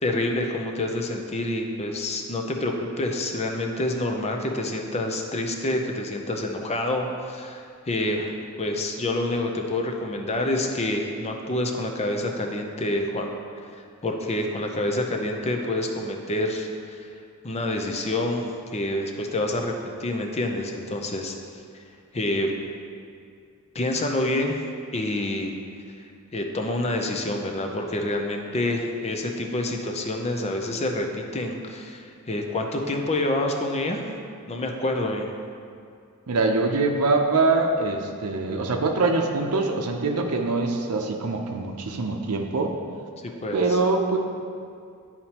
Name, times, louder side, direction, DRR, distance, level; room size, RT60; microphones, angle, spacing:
voice 1, 0.0-13.3 14.0-17.0 17.4-18.5 18.7-21.3 22.1-22.5 23.7-24.6 24.9-25.6 26.3-34.0 34.5-35.3 43.2-43.8, left 1 dB, 30° left, 3 dB, 0.6 m, -27 dB
voice 2, 36.3-42.7 43.5-44.2, right 3 dB, 85° right, 2 dB, 0.6 m, -23 dB
10.5 x 4.3 x 2.9 m, 2.3 s
head